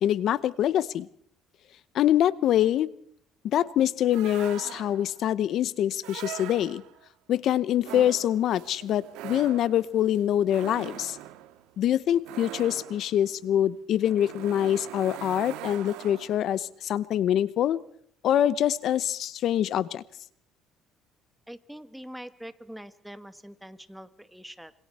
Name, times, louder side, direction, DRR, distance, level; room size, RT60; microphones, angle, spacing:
voice 1, 0.0-1.1 1.9-2.9 3.4-6.8 7.3-11.2 11.8-17.8 18.2-20.0, left 11 dB, 60° left, 17 dB, 0.9 m, -25 dB
sound 1, 4.1-5.2 6.0-7.1 7.8-16.5, right 14 dB, 80° right, 1.7 m, -42 dB
voice 2, 21.5-24.7, equal, 5° right, 13 dB, 1.2 m, -44 dB
27.0 x 25.5 x 4.3 m, 0.63 s
cardioid pair, 110°, 0 cm